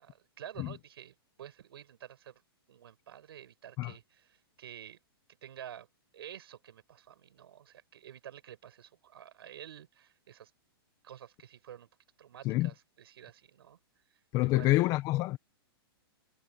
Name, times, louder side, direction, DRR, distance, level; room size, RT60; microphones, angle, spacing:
voice 1, 0.0-2.4 2.7-5.0 5.4-5.9 6.1-10.5 11.0-11.9 12.2-13.8 14.4-14.8, right 10 dB, 70° right, 7.8 m, -50 dB
voice 2, 14.3-15.4, left 18 dB, 30° left, 1.1 m, -27 dB
hypercardioid pair, 155°, 13 cm